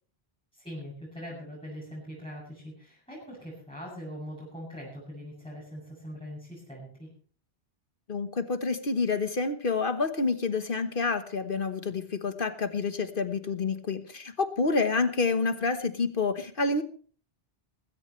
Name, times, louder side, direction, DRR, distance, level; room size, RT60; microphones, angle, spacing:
voice 1, 0.5-7.1, equal, 5° left, -7 dB, 8.0 m, -42 dB
voice 2, 8.1-16.8, left 4 dB, 55° left, 9 dB, 1.4 m, -28 dB
19.5 x 17.0 x 3.2 m, 0.42 s
omnidirectional pair, 1.1 m